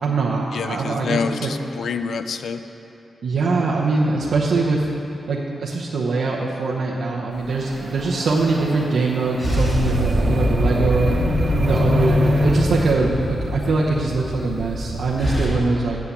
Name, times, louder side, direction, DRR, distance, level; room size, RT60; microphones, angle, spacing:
voice 1, 0.0-1.5 3.2-4.9 5.3-11.1 11.6-16.0, right 3 dB, 70° right, -5 dB, 0.9 m, -22 dB
voice 2, 0.5-2.6, left 6 dB, 70° left, 9 dB, 0.5 m, -27 dB
sound 1, 7.4-8.0 9.4-15.5, left 1 dB, 30° left, 2.5 m, -22 dB
sound 2, 7.5-12.9, right 2 dB, 35° right, 0.8 m, -33 dB
8.6 x 7.1 x 8.1 m, 2.9 s
wide cardioid pair, 150°, 0 cm